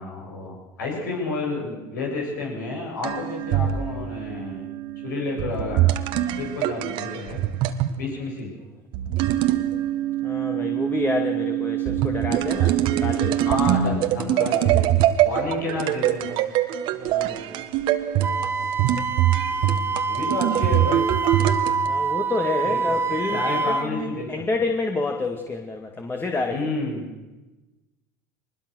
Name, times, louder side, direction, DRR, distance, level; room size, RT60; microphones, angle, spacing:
voice 1, 0.0-4.6 5.0-5.9 6.4-7.4 7.9-8.5 13.4-14.8 15.2-16.4 20.1-21.0 22.6-23.0 23.3-24.3 26.5-27.0, left 3 dB, 85° left, -1 dB, 7.9 m, -30 dB
sound 1, 3.0-8.0 8.9-21.9, right 12 dB, 60° right, 1.6 m, -23 dB
voice 2, 10.2-13.4 16.9-17.6 21.9-26.6, left 3 dB, 20° left, 3 dB, 2.4 m, -28 dB
Wind instrument woodwind instrument, 18.2-23.9, right 5 dB, 25° right, 1.7 m, -26 dB
23.0 x 21.0 x 6.5 m, 1.1 s
hypercardioid pair, 80°, 10 cm